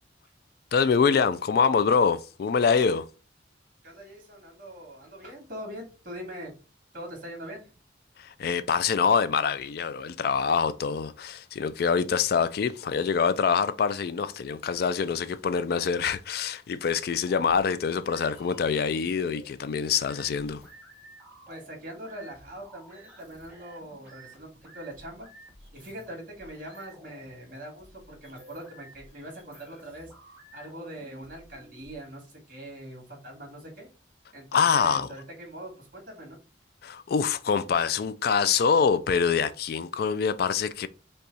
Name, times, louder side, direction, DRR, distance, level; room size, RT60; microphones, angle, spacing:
voice 1, 0.7-3.1 8.2-20.6 34.5-35.1 36.8-40.9, left 6 dB, 55° left, 0.3 m, -25 dB
voice 2, 3.8-6.5 6.9-7.7 21.5-24.5 24.7-25.3 25.7-30.1 30.5-33.9 34.3-36.4, right 1 dB, 45° right, 2.3 m, -42 dB
sound 1, 17.3-32.0, right 1 dB, 10° right, 1.7 m, -53 dB
5.5 x 2.3 x 4.0 m
head